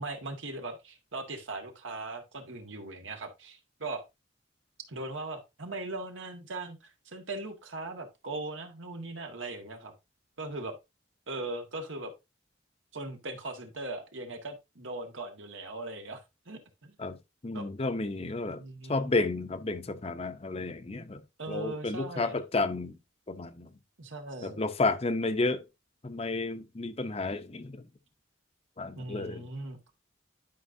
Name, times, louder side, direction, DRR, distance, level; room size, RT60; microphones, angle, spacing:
voice 1, 0.0-4.0 4.9-9.9 10.4-10.7 11.3-12.1 12.9-16.9 17.5-17.6 18.4-19.1 21.4-22.4 24.0-24.6 28.9-29.8, right 2 dB, 85° right, 1.7 m, -39 dB
voice 2, 17.4-18.6 18.9-21.2 21.5-23.0 23.3-23.7 24.4-25.6 26.0-27.8 28.8-29.5, left 3 dB, 30° left, 0.7 m, -31 dB
11.5 x 5.2 x 2.6 m
head